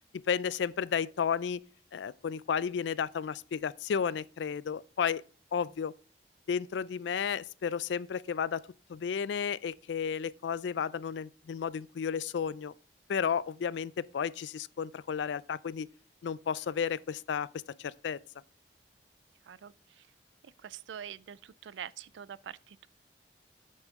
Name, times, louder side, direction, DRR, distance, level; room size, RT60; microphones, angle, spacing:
voice 1, 0.1-1.6 1.9-5.2 5.5-5.9 6.5-8.6 8.9-12.7 13.1-15.9 16.2-17.5 17.8-18.2, left 7 dB, 80° left, 0.4 m, -32 dB
voice 2, 19.4-20.1 20.4-22.9, right 9 dB, 85° right, 0.4 m, -45 dB
8.6 x 6.4 x 3.6 m
head